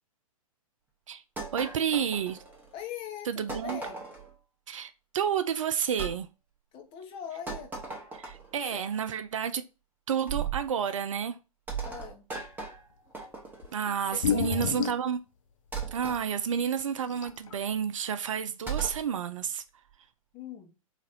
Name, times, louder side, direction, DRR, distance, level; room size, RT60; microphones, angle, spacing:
sound 1, 1.4-2.8 3.5-4.3 6.0-6.2 7.5-8.6 10.3-10.7 11.7-13.8 15.7-16.2 18.7-19.1, right 5 dB, 10° right, 1.0 m, -37 dB
voice 1, 1.5-2.4 3.3-3.8 4.7-6.3 8.1-9.6 10.1-11.4 13.7-15.2 15.9-19.6, right 8 dB, 60° right, 0.5 m, -30 dB
voice 2, 2.7-4.1 6.7-7.7 8.7-8.8 11.8-12.3 13.9-14.9 20.3-20.8, left 9 dB, 30° left, 0.8 m, -42 dB
sound 2, 13.6-13.7 14.1-15.1 16.1-16.2 16.8-16.9 17.1-17.5, left 9 dB, 60° left, 0.5 m, -29 dB
4.0 x 2.5 x 4.1 m
figure-of-eight pair, 110°, 19 cm